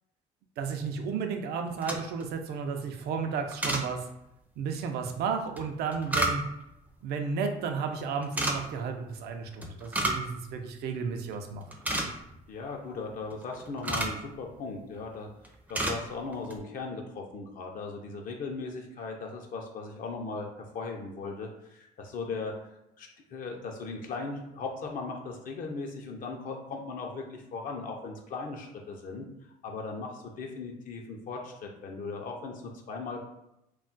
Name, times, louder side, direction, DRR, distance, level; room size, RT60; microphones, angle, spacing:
voice 1, 0.6-4.0 4.6-6.4 7.0-11.6, right 5 dB, 70° right, 5 dB, 0.4 m, -33 dB
sound 1, 1.7-2.3 3.5-3.9 5.6-6.7 8.2-8.6 9.6-10.3 10.6-10.7 11.2-11.3 11.6-12.4 13.3-14.2 14.9-15.2 15.4-16.0 16.3-16.6, right 1 dB, 10° right, 0.4 m, -31 dB
voice 2, 12.5-15.3 15.7-20.5 20.7-22.7 23.0-29.3 29.6-33.2, left 4 dB, 55° left, 1 dB, 0.5 m, -38 dB
2.3 x 2.1 x 3.8 m, 0.85 s
cardioid pair, 110°, 17 cm